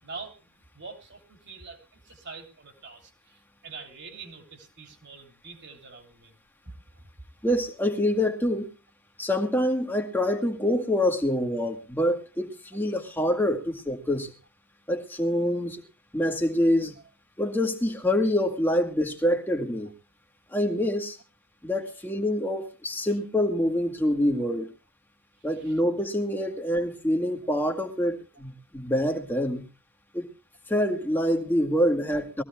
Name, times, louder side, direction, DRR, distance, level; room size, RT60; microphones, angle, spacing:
voice 1, 0.0-0.3 0.7-1.8 2.1-3.4 3.6-6.3 6.6-6.8 25.6-25.7 26.7-26.8, right 4 dB, 50° right, 3.2 m, -44 dB
voice 2, 7.4-8.7 9.2-14.3 14.9-15.8 16.1-16.9 17.4-19.9 20.5-21.2 21.6-24.7 25.4-29.7 30.1-30.3 30.7-32.4, left 1 dB, 10° left, 1.9 m, -26 dB
22.5 x 15.5 x 2.3 m
head